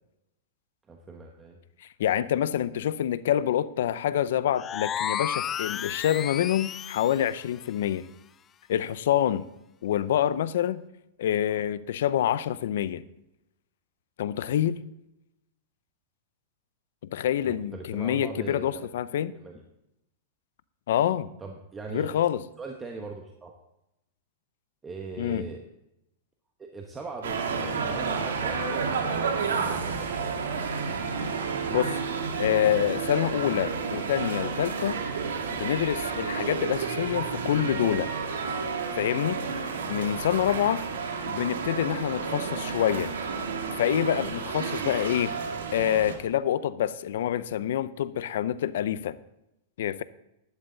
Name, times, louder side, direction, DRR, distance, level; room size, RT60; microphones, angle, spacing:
voice 1, 0.9-1.6 11.3-11.6 17.4-18.9 19.3-19.6 21.4-22.2 22.6-23.5 24.8-25.6 26.6-30.1, right 4 dB, 15° right, 1.2 m, -40 dB
voice 2, 2.0-8.0 8.7-9.4 9.8-10.8 11.2-13.0 14.2-14.8 17.1-19.3 20.9-21.3 21.9-22.4 25.2-25.5 31.7-32.0 32.4-35.0 35.5-38.1 39.0-39.4 39.9-40.9 41.3-43.1 43.8-45.4 45.7-49.2 49.8-50.0, left 11 dB, 75° left, 0.6 m, -26 dB
sound 1, 4.6-7.3, left 9 dB, 25° left, 0.3 m, -32 dB
sound 2, 27.2-46.2, right 5 dB, 90° right, 2.0 m, -31 dB
11.5 x 11.0 x 4.0 m
hypercardioid pair, 140°, 0 cm